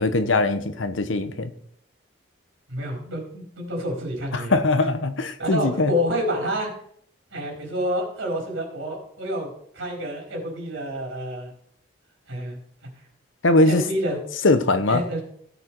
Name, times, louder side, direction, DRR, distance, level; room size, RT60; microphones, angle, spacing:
voice 1, 0.0-1.5 4.3-5.9 13.4-13.8 14.4-15.0, left 2 dB, 85° left, 10 dB, 1.1 m, -21 dB
voice 2, 2.7-4.6 5.4-6.7 7.3-9.5 9.7-11.5 12.3-12.6 13.7-14.2 14.9-15.2, equal, 80° right, -1 dB, 4.1 m, -28 dB
16.0 x 7.9 x 4.6 m, 0.67 s
head